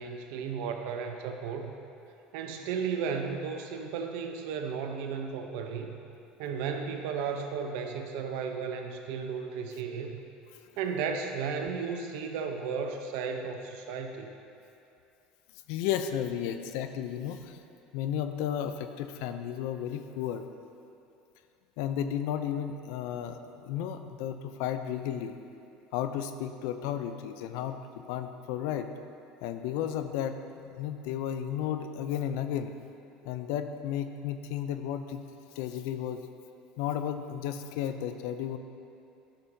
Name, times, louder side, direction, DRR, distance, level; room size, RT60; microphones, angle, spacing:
voice 1, 0.0-1.7 2.3-5.9 6.4-10.2 10.8-14.3, right 6 dB, 75° right, 5 dB, 0.7 m, -34 dB
voice 2, 15.7-17.6 17.9-20.4 21.8-25.3 25.9-28.9 29.4-32.7 33.2-35.2 35.6-36.2 36.8-38.6, left 9 dB, 75° left, 9 dB, 0.5 m, -33 dB
11.5 x 6.1 x 2.7 m, 2.7 s
supercardioid pair, 90°, 3 cm